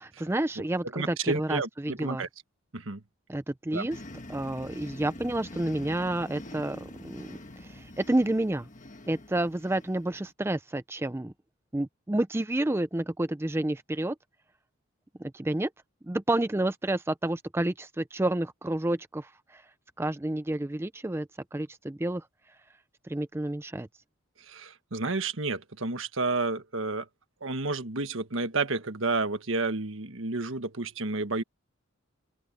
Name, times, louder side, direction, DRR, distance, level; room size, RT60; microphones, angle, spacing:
voice 1, 0.0-2.2 3.3-4.0 4.3-8.7 9.1-11.3 11.7-14.2 15.2-15.7 16.0-19.6 20.0-22.2 23.0-23.9, right 1 dB, 10° right, 0.4 m, -30 dB
voice 2, 0.9-2.3 2.7-3.0 3.7-3.9 24.5-27.0 27.4-31.4, right 3 dB, 70° right, 1.4 m, -31 dB
sound 1, 3.9-10.3, left 1 dB, 35° left, 1.7 m, -45 dB
open air
head